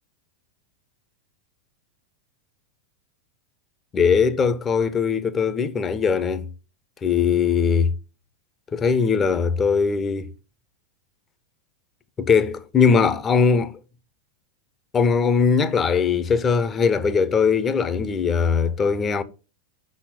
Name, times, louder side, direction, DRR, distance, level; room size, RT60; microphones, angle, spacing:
voice 1, 3.9-6.5 7.0-7.9 8.7-10.3 12.2-13.8 14.9-19.2, left 5 dB, 20° left, 0.7 m, -20 dB
5.6 x 4.2 x 5.0 m
figure-of-eight pair, 90°, 0 cm